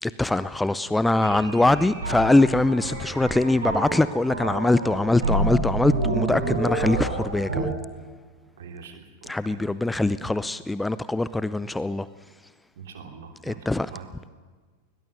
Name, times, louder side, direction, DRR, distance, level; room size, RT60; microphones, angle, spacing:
voice 1, 0.0-7.7 9.2-12.1 13.4-13.9, left 2 dB, 5° left, 16 dB, 0.5 m, -23 dB
sound 1, 1.2-7.6, right 2 dB, 75° right, 6.4 m, -28 dB
voice 2, 8.6-9.6 12.8-14.1, right 6 dB, 60° right, 4 dB, 3.0 m, -43 dB
21.5 x 20.0 x 6.7 m, 1.5 s
figure-of-eight pair, 90°, 0 cm